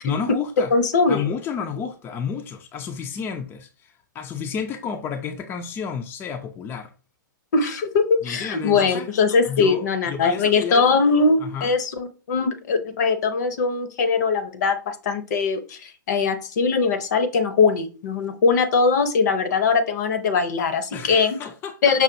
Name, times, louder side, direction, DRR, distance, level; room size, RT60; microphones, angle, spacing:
voice 1, 0.0-0.7 1.1-6.9 8.2-9.1 9.5-11.0 11.4-11.7 20.9-21.8, left 7 dB, 20° left, 0.4 m, -31 dB
voice 2, 0.7-1.2 7.5-21.4 21.8-22.0, left 4 dB, 60° left, 0.7 m, -21 dB
5.6 x 2.4 x 2.6 m
hypercardioid pair, 120°, 11 cm